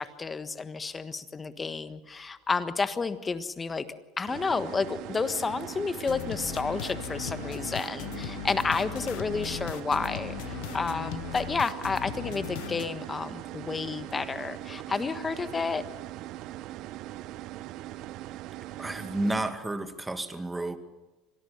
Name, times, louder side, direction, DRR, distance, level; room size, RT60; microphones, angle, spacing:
voice 1, 0.0-3.8 4.2-15.8, left 4 dB, 20° left, 12 dB, 1.4 m, -31 dB
sound 1, 4.3-19.5, right 15 dB, 60° right, 0.7 m, -41 dB
sound 2, 6.1-12.9, left 16 dB, 70° left, 1.0 m, -38 dB
voice 2, 18.8-20.8, right 2 dB, 10° right, 9 dB, 2.1 m, -31 dB
25.5 x 18.0 x 6.9 m, 1.1 s
supercardioid pair, 95°, 0 cm